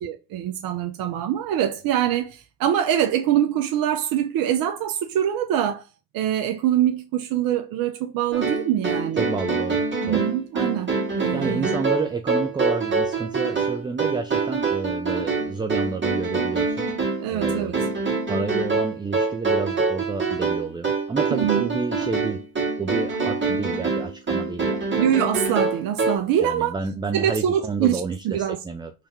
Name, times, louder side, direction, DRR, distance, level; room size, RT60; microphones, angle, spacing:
voice 1, 0.0-5.8 6.1-9.2 10.0-11.7 17.2-17.7 21.3-21.7 25.0-26.8 27.1-28.6, right 10 dB, 55° right, 0.7 m, -24 dB
sound 1, 8.3-26.2, right 4 dB, 25° right, 2.1 m, -25 dB
voice 2, 9.1-10.2 11.3-16.9 17.3-17.9 18.3-22.4 22.8-25.1 26.4-28.9, right 4 dB, 10° right, 0.4 m, -30 dB
3.4 x 3.3 x 4.2 m
hypercardioid pair, 65°, 42 cm